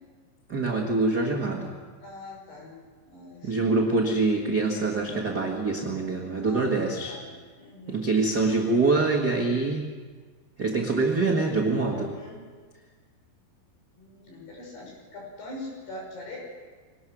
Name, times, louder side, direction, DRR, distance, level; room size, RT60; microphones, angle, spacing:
voice 1, 0.5-1.7 3.4-7.2 7.9-9.8 10.6-12.1, right 3 dB, 85° right, -2 dB, 0.8 m, -25 dB
voice 2, 2.0-2.8 3.1-4.0 6.4-8.1 11.8-12.4 14.0-16.4, left 2 dB, 65° left, -2 dB, 7.9 m, -43 dB
23.0 x 19.0 x 6.2 m, 1.5 s
omnidirectional pair, 5.0 m